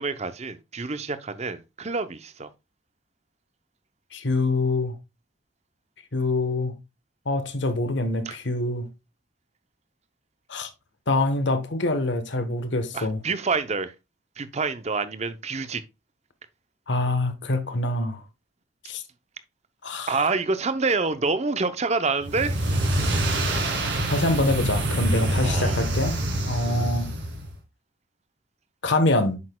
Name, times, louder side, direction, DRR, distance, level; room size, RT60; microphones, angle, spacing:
voice 1, 0.0-2.5 8.3-8.4 12.9-13.9 14.4-15.8 20.1-22.8 25.4-25.8 26.6-26.9, right 4 dB, 35° right, 0.6 m, -27 dB
voice 2, 4.1-4.9 6.1-6.8 7.3-8.9 10.5-10.7 11.1-13.2 16.9-18.2 18.8-19.0 19.8-20.2 24.1-26.2 26.4-27.1 28.8-29.4, left 2 dB, 60° left, 1.1 m, -25 dB
sound 1, 22.2-27.5, right 1 dB, 60° right, 2.1 m, -26 dB
8.5 x 6.4 x 2.2 m
head